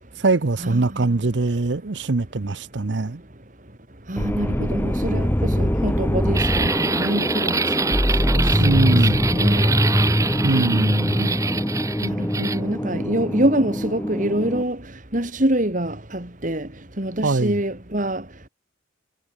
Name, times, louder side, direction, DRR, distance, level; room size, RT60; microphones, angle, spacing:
voice 1, 0.2-3.2 8.6-9.2 10.4-11.2 17.2-17.6, right 3 dB, 65° right, 0.8 m, -22 dB
voice 2, 4.1-7.5 8.3-8.6 9.3-9.7 11.2-11.3 12.0-14.8 15.1-15.9 16.4-16.6 17.0-18.2, right 1 dB, 40° right, 2.9 m, -25 dB
sound 1, 4.2-14.6, equal, 10° left, 1.8 m, -22 dB
sound 2, 6.3-12.6, right 4 dB, 15° right, 0.6 m, -25 dB
head